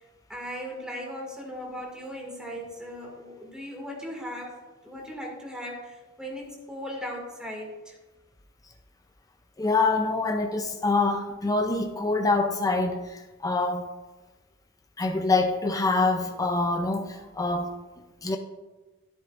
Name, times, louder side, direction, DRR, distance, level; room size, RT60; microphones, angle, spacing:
voice 1, 0.3-4.5 4.8-8.0, equal, 5° right, 2.2 m, -38 dB
voice 2, 9.6-13.9 15.0-17.8 18.2-18.4, left 3 dB, 15° left, 0.5 m, -25 dB
11.5 x 10.5 x 2.5 m
head